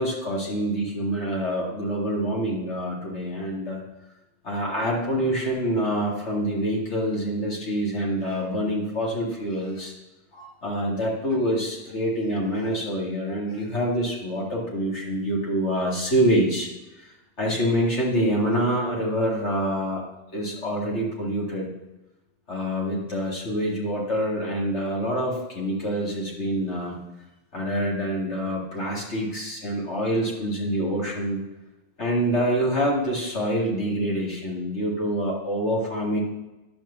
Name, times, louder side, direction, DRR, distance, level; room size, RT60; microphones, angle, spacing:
voice 1, 0.0-3.8 4.4-9.9 10.3-16.7 17.0-20.0 20.3-21.7 22.5-27.0 27.5-31.4 32.0-36.2, equal, 65° left, -4 dB, 2.6 m, -26 dB
10.5 x 4.5 x 7.1 m, 1.0 s
omnidirectional pair, 1.3 m